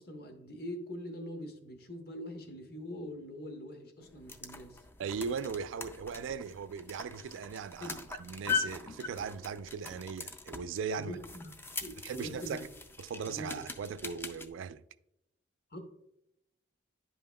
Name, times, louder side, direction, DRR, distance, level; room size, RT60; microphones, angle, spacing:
voice 1, 0.0-4.8 7.8-8.0 11.0-11.5 11.8-12.6 13.3-13.6 15.7-15.8, equal, 50° left, 1.0 m, -43 dB
sound 1, 4.0-14.5, left 5 dB, 10° left, 0.3 m, -41 dB
voice 2, 5.0-11.1 12.0-12.6 13.0-14.8, right 6 dB, 80° right, 0.3 m, -38 dB
10.5 x 5.4 x 2.2 m
head